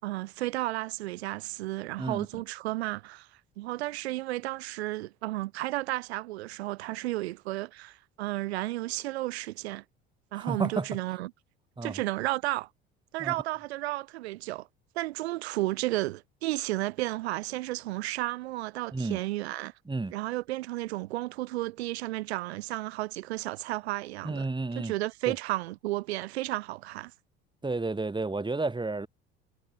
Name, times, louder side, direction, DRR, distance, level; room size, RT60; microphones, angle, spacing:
voice 1, 0.0-3.3 3.6-9.8 10.3-11.3 11.8-12.7 13.1-14.7 14.9-19.7 20.1-24.5 24.7-27.1, right 18 dB, 80° right, 4.2 m, -33 dB
voice 2, 10.3-10.9 11.8-12.0 13.2-13.4 18.9-19.2 19.9-20.1 24.2-24.9 25.3-25.4 27.6-29.1, right 3 dB, 15° right, 4.0 m, -31 dB
hypercardioid pair, 65°, 32 cm